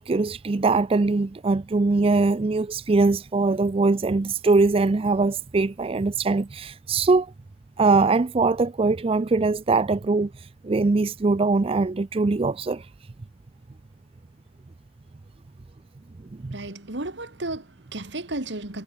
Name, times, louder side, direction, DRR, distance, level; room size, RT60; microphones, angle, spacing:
voice 1, 0.0-7.3 7.8-12.9 16.4-16.6, right 3 dB, 30° right, 0.4 m, -22 dB
voice 2, 16.5-18.8, right 2 dB, 70° right, 2.6 m, -33 dB
head